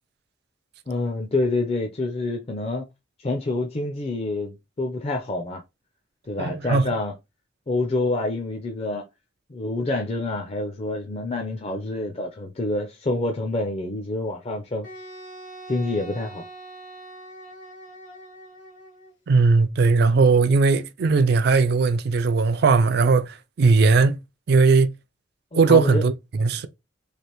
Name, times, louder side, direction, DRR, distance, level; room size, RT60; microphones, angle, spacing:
voice 1, 0.9-2.9 3.2-5.6 6.3-7.1 7.7-9.1 9.5-14.9 15.7-16.4 25.5-26.0, left 2 dB, 30° left, 0.4 m, -27 dB
voice 2, 6.4-6.9 19.3-24.2 24.5-24.9 25.5-26.7, right 4 dB, 55° right, 0.4 m, -18 dB
Wind instrument woodwind instrument, 14.8-19.1, right 1 dB, 75° left, 1.7 m, -42 dB
3.2 x 2.4 x 2.9 m
head